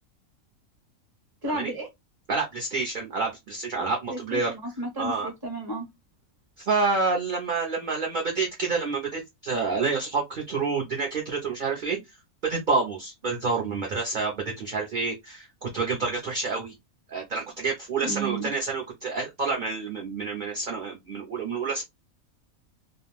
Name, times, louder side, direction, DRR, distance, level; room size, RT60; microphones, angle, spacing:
voice 1, 1.4-1.9 4.1-5.9 18.0-18.5, right 2 dB, 20° right, 0.8 m, -32 dB
voice 2, 2.3-4.5 5.0-5.3 6.6-12.0 12.4-16.7 17.1-21.8, right 4 dB, 50° right, 0.6 m, -28 dB
2.4 x 2.1 x 3.1 m
omnidirectional pair, 1.5 m